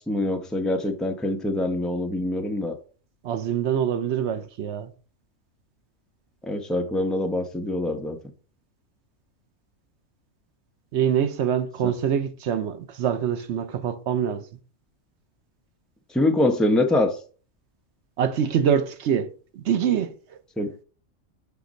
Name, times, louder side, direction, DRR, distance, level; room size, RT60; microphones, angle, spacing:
voice 1, 0.1-2.8 6.4-8.2 16.1-17.1 20.6-20.7, left 1 dB, ahead, 0.5 m, -24 dB
voice 2, 3.2-4.9 10.9-14.5 18.2-20.4, right 8 dB, 65° right, 0.9 m, -25 dB
5.8 x 3.5 x 5.1 m
omnidirectional pair, 1.3 m